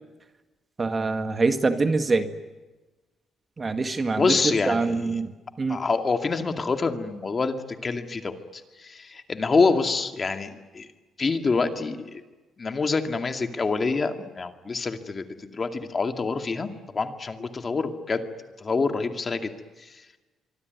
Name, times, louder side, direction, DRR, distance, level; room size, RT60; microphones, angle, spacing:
voice 1, 0.8-2.3 3.6-5.3 5.6-5.8, right 3 dB, 25° right, 8 dB, 1.8 m, -24 dB
voice 2, 4.2-5.2 5.7-8.3 8.8-10.9 11.2-12.2 12.6-16.7 16.9-18.2 18.6-19.5, left 4 dB, 30° left, 6 dB, 2.3 m, -26 dB
25.5 x 24.5 x 9.5 m, 1.2 s
cardioid pair, 115°, 0 cm